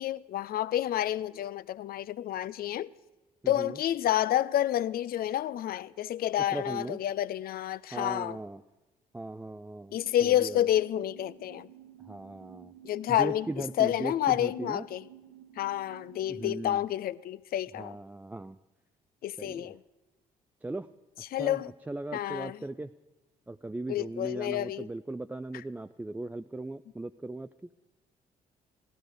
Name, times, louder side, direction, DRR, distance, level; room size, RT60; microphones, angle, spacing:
voice 1, 0.0-2.9 3.5-8.4 9.9-11.7 12.8-15.0 15.6-18.0 19.2-19.8 21.3-21.7 22.1-22.6 23.9-24.9, left 12 dB, 55° left, 0.4 m, -29 dB
voice 2, 3.4-3.8 6.5-7.0 7.9-8.6 9.1-10.6 12.0-12.7 13.1-14.9 16.3-16.8 17.8-18.6 19.4-19.7 20.6-20.9 21.4-22.9 23.5-27.5, right 2 dB, 10° right, 0.3 m, -38 dB
sound 1, 9.9-16.8, right 11 dB, 75° right, 1.3 m, -53 dB
15.0 x 12.0 x 4.9 m
hypercardioid pair, 50°, 18 cm